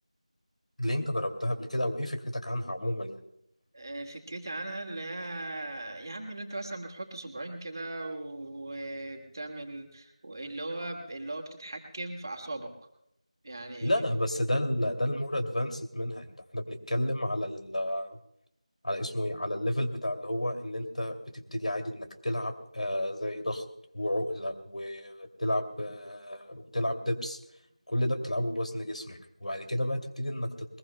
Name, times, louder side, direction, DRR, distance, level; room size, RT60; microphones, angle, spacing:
voice 1, 0.8-3.2 13.8-16.3 16.5-18.2 18.8-23.6 23.9-27.4 27.9-30.8, left 1 dB, 80° left, 5 dB, 2.5 m, -31 dB
voice 2, 3.7-12.7 13.4-14.1, right 2 dB, 35° right, 3 dB, 2.0 m, -38 dB
21.5 x 21.5 x 2.2 m, 0.76 s
figure-of-eight pair, 175°, 4 cm